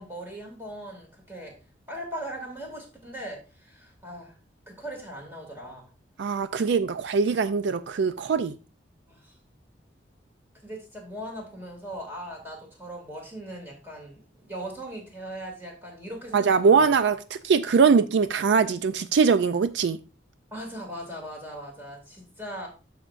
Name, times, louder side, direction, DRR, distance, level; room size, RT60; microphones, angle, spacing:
voice 1, 0.0-1.5 1.9-4.3 4.7-5.9 9.1-9.3 10.6-16.8 20.5-22.7, right 1 dB, 10° right, 2.4 m, -39 dB
voice 2, 6.2-8.6 16.3-20.0, right 5 dB, 65° right, 0.4 m, -22 dB
13.0 x 5.0 x 2.5 m
head